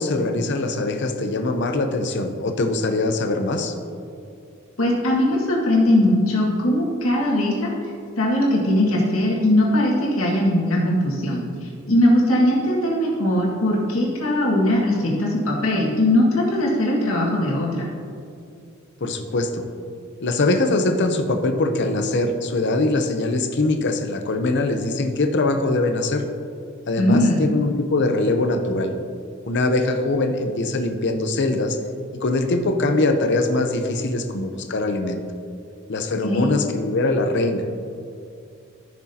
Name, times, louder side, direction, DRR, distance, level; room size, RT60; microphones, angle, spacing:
voice 1, 0.0-3.7 19.0-19.6 20.2-26.2 26.9-28.9 29.5-31.8 32.2-35.2 35.9-37.8, left 2 dB, 55° left, 5 dB, 0.7 m, -22 dB
voice 2, 4.8-7.7 8.2-17.9 27.0-27.5 36.2-36.5, left 1 dB, 75° left, -3 dB, 1.9 m, -20 dB
14.0 x 6.2 x 2.8 m, 2.4 s
head